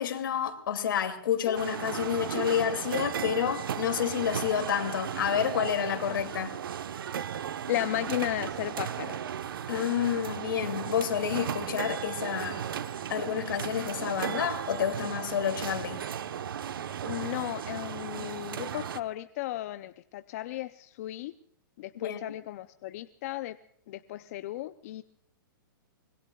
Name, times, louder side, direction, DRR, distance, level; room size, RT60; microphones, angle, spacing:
voice 1, 0.0-6.6 9.7-12.7 13.1-16.0 21.9-22.2, left 9 dB, 70° left, 2.5 m, -29 dB
sound 1, 1.6-19.0, right 8 dB, 80° right, 1.1 m, -35 dB
voice 2, 7.7-9.2 17.0-21.3 21.8-23.6 23.9-25.0, left 15 dB, 45° left, 0.6 m, -35 dB
25.5 x 21.5 x 2.4 m
hypercardioid pair, 155°, 12 cm